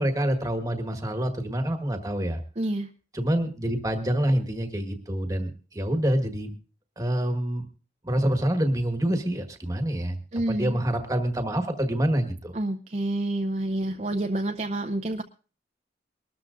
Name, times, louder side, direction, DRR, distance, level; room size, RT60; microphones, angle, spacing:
voice 1, 0.0-2.4 3.1-6.5 7.0-7.6 8.0-12.5, right 1 dB, 20° right, 6 dB, 1.4 m, -26 dB
voice 2, 2.6-2.9 10.3-10.8 12.5-15.2, right 1 dB, 40° right, 5 dB, 0.6 m, -28 dB
23.5 x 13.0 x 2.5 m, 0.35 s
head